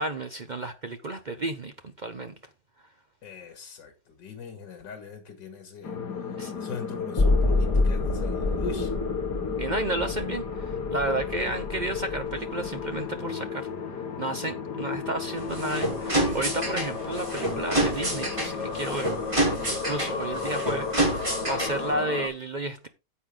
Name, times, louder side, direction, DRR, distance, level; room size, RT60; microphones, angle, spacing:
voice 1, 0.0-2.3 6.4-6.5 9.6-13.7 14.2-22.9, right 2 dB, 65° right, 0.4 m, -32 dB
voice 2, 3.2-6.0 6.6-8.9 11.4-11.6 14.9-15.1, left 5 dB, 85° left, 2.6 m, -41 dB
sound 1, 5.8-22.3, left 6 dB, 65° left, 2.2 m, -33 dB
sound 2, 7.2-13.1 13.5-13.6, left 2 dB, 20° left, 0.9 m, -28 dB
sound 3, 15.4-21.9, right 1 dB, 15° right, 3.2 m, -28 dB
9.7 x 8.0 x 3.8 m
omnidirectional pair, 1.9 m